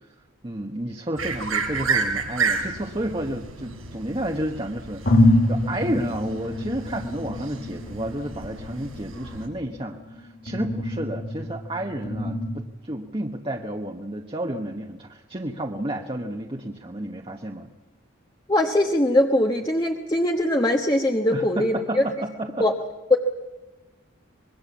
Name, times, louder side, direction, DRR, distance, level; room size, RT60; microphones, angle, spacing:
voice 1, 0.4-17.7 21.3-22.7, right 1 dB, 25° right, 1 dB, 1.1 m, -31 dB
sound 1, 1.2-9.5, right 5 dB, 85° right, 7.0 m, -31 dB
sound 2, 2.7-4.0 4.6-4.7 5.0-12.6, left 1 dB, 50° left, 2.8 m, -26 dB
voice 2, 18.5-22.0 22.6-22.7 23.1-23.2, left 1 dB, 20° left, 3 dB, 1.1 m, -21 dB
25.0 x 21.5 x 7.2 m, 1.1 s
head